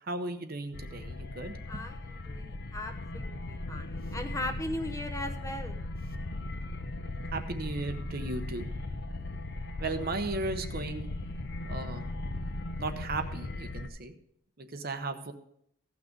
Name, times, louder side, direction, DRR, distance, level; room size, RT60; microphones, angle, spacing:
voice 1, 0.0-1.8 7.3-8.7 9.8-11.1 11.7-12.1 12.8-14.1 14.6-15.3, right 2 dB, 45° right, 8 dB, 0.8 m, -36 dB
sound 1, 0.7-13.9, left 2 dB, 50° left, 0.6 m, -38 dB
voice 2, 1.7-5.8, left 1 dB, 15° left, 6 dB, 0.8 m, -38 dB
15.5 x 6.1 x 5.2 m, 0.71 s
head